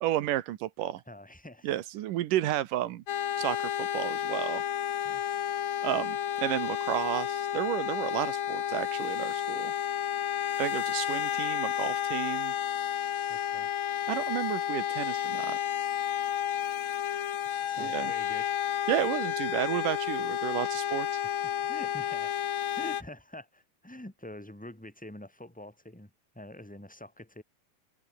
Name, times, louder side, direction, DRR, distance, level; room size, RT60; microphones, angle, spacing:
voice 1, 0.0-1.0 1.6-3.0 3.4-4.6 5.8-9.7 10.6-12.5 14.1-15.6 17.8-18.1 18.9-21.2, right 14 dB, 80° right, 2.7 m, -32 dB
voice 2, 1.1-1.8 2.4-2.5 5.0-5.2 13.3-13.7 17.6-18.5 21.6-26.1 26.3-27.4, left 1 dB, 5° left, 2.5 m, -46 dB
sound 1, 3.1-23.0, left 10 dB, 60° left, 2.6 m, -31 dB
omnidirectional pair, 3.8 m